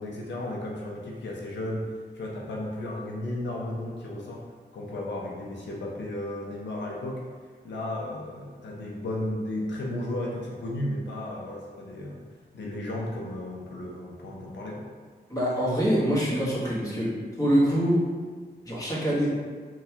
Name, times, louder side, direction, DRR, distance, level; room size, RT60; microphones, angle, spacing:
voice 1, 0.0-4.4 4.7-7.2 7.6-12.2 12.5-14.9, left 1 dB, 85° left, -3 dB, 0.5 m, -34 dB
voice 2, 15.3-18.0 18.6-19.3, equal, 20° left, -7 dB, 1.1 m, -24 dB
4.0 x 2.3 x 2.8 m, 1.5 s
wide cardioid pair, 85°, 18 cm